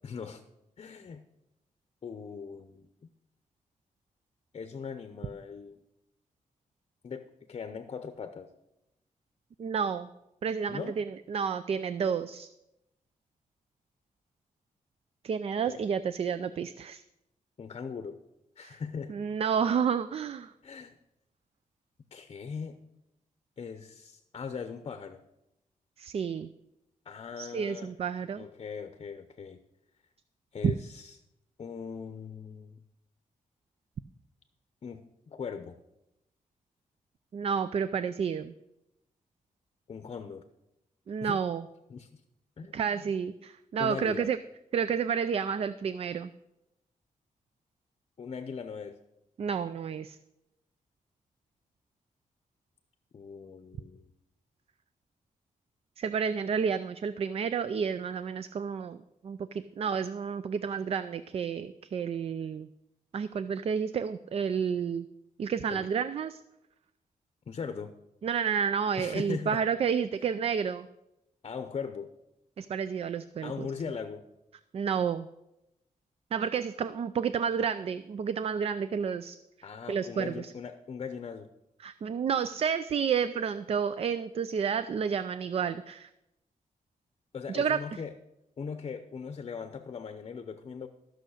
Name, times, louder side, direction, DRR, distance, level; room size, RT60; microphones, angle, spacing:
voice 1, 0.0-0.4 0.8-1.2 2.0-3.1 4.5-5.8 7.0-8.5 10.7-11.0 15.7-15.8 17.6-18.2 18.6-19.1 20.6-21.0 22.1-22.8 23.6-25.2 27.0-27.9 28.4-29.6 30.5-31.2 31.6-32.8 34.8-35.8 39.9-40.4 41.2-41.4 41.9-42.2 42.6-43.0 43.8-44.3 48.2-49.0 53.1-54.1 65.7-65.9 67.5-67.9 69.0-69.6 71.4-72.1 73.4-74.3 79.6-81.5 87.3-88.1 88.6-90.9, left 6 dB, 40° left, 9 dB, 0.7 m, -40 dB
voice 2, 9.6-10.1 10.4-12.5 15.2-17.0 18.6-18.8 19.1-20.5 26.0-26.5 27.4-28.5 30.6-30.7 37.3-38.5 41.1-41.6 42.7-44.4 44.7-46.3 49.4-50.2 56.0-62.7 63.1-65.1 65.4-66.4 68.2-70.9 72.6-73.7 74.7-75.3 76.3-79.4 79.9-80.5 81.8-86.1 87.5-87.8, right 7 dB, 45° right, 13 dB, 0.4 m, -30 dB
14.0 x 6.3 x 6.4 m, 0.89 s
wide cardioid pair, 170°, 14 cm